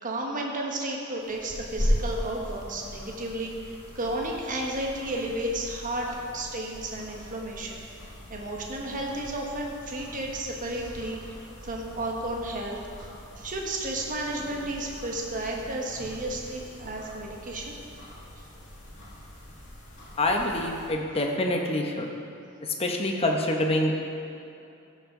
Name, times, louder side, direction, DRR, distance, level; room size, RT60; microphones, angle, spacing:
voice 1, 0.0-7.9 8.3-11.4 11.6-13.1 13.4-17.7, right 1 dB, 40° right, -1 dB, 1.2 m, -33 dB
sound 1, 1.2-20.9, equal, 60° left, 2.1 m, -38 dB
voice 2, 20.2-22.1 22.8-23.9, left 1 dB, 30° left, 1 dB, 0.9 m, -26 dB
14.5 x 6.0 x 3.7 m, 2.7 s
head